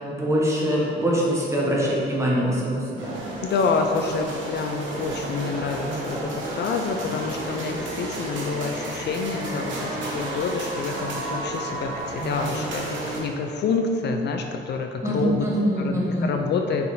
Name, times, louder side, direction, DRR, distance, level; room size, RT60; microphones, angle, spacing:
voice 1, 0.0-3.2 15.0-16.3, equal, 15° right, -5 dB, 1.5 m, -24 dB
sound 1, 3.0-13.2, right 2 dB, 70° right, 1.2 m, -32 dB
voice 2, 3.4-15.5 15.8-16.9, left 4 dB, 60° left, 4 dB, 0.5 m, -27 dB
5.6 x 4.4 x 3.9 m, 2.5 s
cardioid pair, 90°, 20 cm